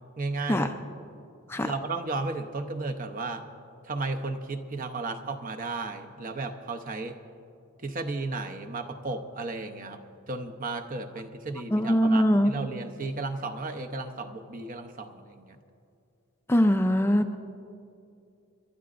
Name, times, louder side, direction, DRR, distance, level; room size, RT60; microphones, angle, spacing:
voice 1, 0.2-0.7 1.6-3.4 3.8-7.2 7.8-15.6 16.6-16.7, right 3 dB, 40° right, 6 dB, 0.7 m, -34 dB
voice 2, 11.7-12.5 16.5-17.4, equal, 10° left, 6 dB, 0.4 m, -22 dB
28.5 x 12.0 x 2.5 m, 2.5 s
head